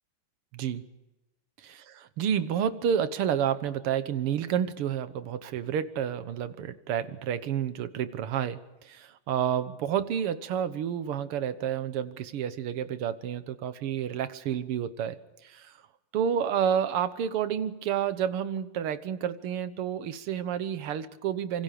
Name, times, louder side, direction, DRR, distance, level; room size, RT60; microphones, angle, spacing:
voice 1, 1.6-15.7 16.1-21.6, right 9 dB, 85° right, 13 dB, 2.1 m, -30 dB
26.5 x 24.5 x 5.1 m, 1.0 s
omnidirectional pair, 2.4 m